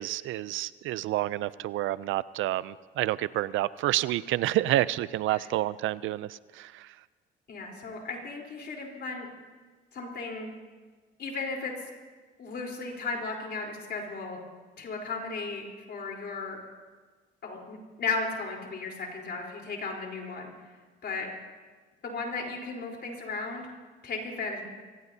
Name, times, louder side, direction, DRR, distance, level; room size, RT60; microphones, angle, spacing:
voice 1, 0.0-6.9, right 15 dB, 85° right, 18 dB, 0.4 m, -29 dB
voice 2, 7.5-9.3 9.9-10.5 11.2-11.8 12.4-14.4 14.8-16.6 17.4-20.5 21.0-21.3 22.0-23.7 24.0-24.6, left 4 dB, 55° left, 0 dB, 3.8 m, -35 dB
24.5 x 17.5 x 2.8 m, 1.4 s
cardioid pair, 90°, 20 cm